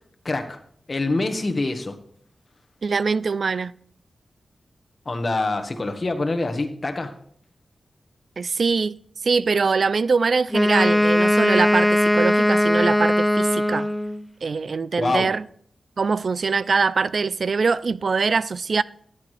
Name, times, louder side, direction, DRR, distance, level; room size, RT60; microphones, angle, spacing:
voice 1, 0.2-0.6 0.9-1.9 5.0-7.1 15.0-15.3, left 2 dB, 40° left, 1.4 m, -25 dB
voice 2, 2.8-3.7 8.4-9.0 9.2-13.9 14.4-15.4 16.0-18.8, right 4 dB, 65° right, 0.3 m, -23 dB
Wind instrument woodwind instrument, 10.5-14.2, left 1 dB, 10° left, 0.6 m, -19 dB
13.5 x 8.4 x 3.3 m
cardioid pair, 60°, 0 cm